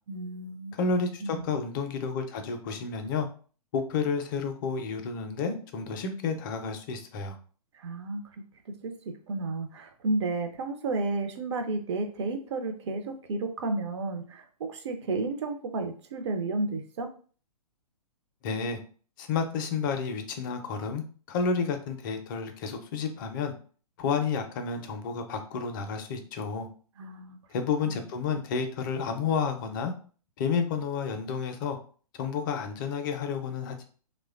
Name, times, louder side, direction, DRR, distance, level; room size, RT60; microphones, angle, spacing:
voice 1, 0.1-0.7 1.2-1.6 7.7-8.2 8.8-17.1 27.0-27.4 27.9-28.0, right 3 dB, 45° right, 6 dB, 0.5 m, -32 dB
voice 2, 0.8-3.3 3.7-7.3 18.4-18.8 19.2-23.5 24.0-26.7 27.5-29.9 30.4-31.8 32.2-33.9, left 5 dB, 30° left, 6 dB, 0.4 m, -30 dB
3.0 x 2.1 x 2.4 m, 0.41 s
figure-of-eight pair, 120°, 20 cm